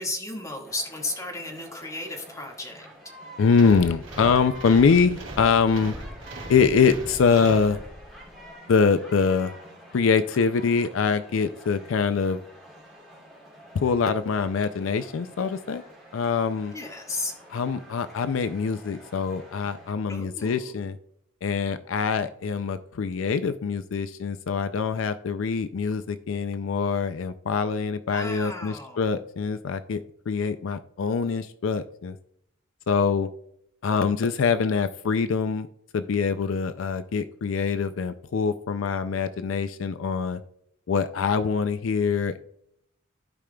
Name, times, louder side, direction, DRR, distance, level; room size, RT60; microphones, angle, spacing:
voice 1, 0.0-2.9 16.7-17.3 20.1-20.7 28.1-29.1, left 2 dB, 15° left, 0 dB, 1.7 m, -34 dB
sound 1, 0.6-19.9, equal, ahead, 2.8 m, -48 dB
voice 2, 3.4-5.9 6.5-7.8 8.7-9.5 9.9-12.4 13.7-15.8 16.1-16.7 17.5-20.9 21.4-32.2 32.9-33.3 33.8-35.7 35.9-40.4 40.9-42.4, left 5 dB, 70° left, 11 dB, 0.4 m, -24 dB
sound 2, 3.5-8.2, right 1 dB, 65° right, 2.9 m, -38 dB
14.5 x 5.0 x 2.3 m, 0.73 s
head